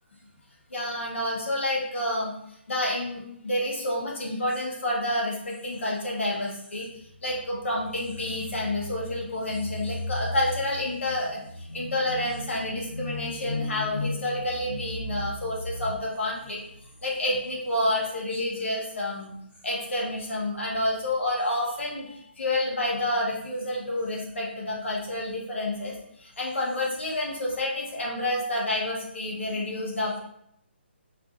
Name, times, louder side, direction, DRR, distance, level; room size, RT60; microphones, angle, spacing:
voice 1, 0.7-2.3 2.7-6.9 7.2-16.6 17.0-19.3 19.6-25.9 26.2-30.2, left 1 dB, 85° left, -2 dB, 1.3 m, -29 dB
4.7 x 2.7 x 2.4 m, 0.72 s
hypercardioid pair, 165°, 6 cm